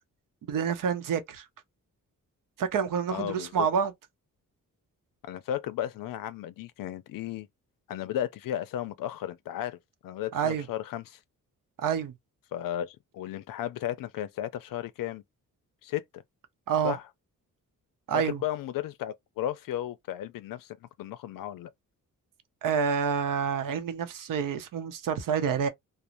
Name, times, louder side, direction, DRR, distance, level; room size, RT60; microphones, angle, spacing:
voice 1, 0.5-1.4 2.6-3.9 10.3-10.7 11.8-12.1 16.7-17.0 18.1-18.4 22.6-25.7, right 7 dB, 75° right, 0.7 m, -28 dB
voice 2, 3.1-3.7 5.2-7.5 7.9-9.8 10.0-11.2 12.5-15.2 15.8-16.2 16.8-17.0 18.1-21.7, left 11 dB, 85° left, 0.5 m, -34 dB
2.5 x 2.0 x 2.9 m
wide cardioid pair, 150°, 33 cm